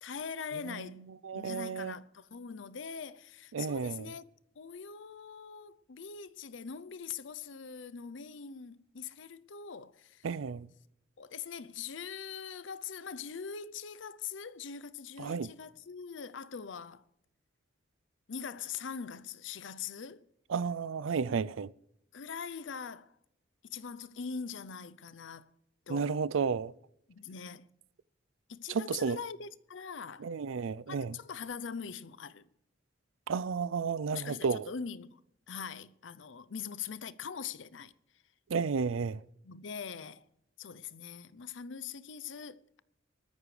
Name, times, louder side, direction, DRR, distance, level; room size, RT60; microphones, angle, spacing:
voice 1, 0.0-1.1 1.3-4.3 4.6-10.3 11.2-17.0 18.3-20.3 22.1-23.1 23.6-25.5 25.9-26.2 27.1-27.7 28.5-30.3 30.9-32.5 34.1-35.2 35.5-37.9 39.4-40.3 40.6-42.8, left 6 dB, 75° left, 0.6 m, -42 dB
voice 2, 1.2-1.9 3.5-4.1 10.2-10.7 15.2-15.5 20.5-21.7 25.9-26.7 28.7-29.2 30.2-31.2 33.3-34.6 38.5-39.2, right 5 dB, 90° right, 0.4 m, -32 dB
20.0 x 14.0 x 3.3 m
head